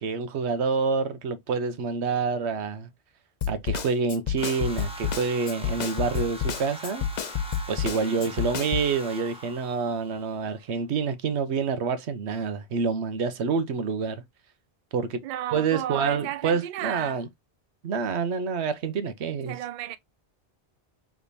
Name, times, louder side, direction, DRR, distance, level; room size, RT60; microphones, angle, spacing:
voice 1, 0.0-2.9 3.5-7.1 7.7-14.2 14.9-15.2 15.5-17.3 17.8-19.6, right 5 dB, 90° right, 1.1 m, -27 dB
Snare drum, 3.4-8.9, left 7 dB, 50° left, 0.6 m, -29 dB
sound 1, 4.4-10.5, equal, 5° right, 1.2 m, -42 dB
voice 2, 15.2-17.2 19.5-20.0, right 11 dB, 60° right, 0.5 m, -33 dB
5.0 x 3.3 x 2.6 m
omnidirectional pair, 1.1 m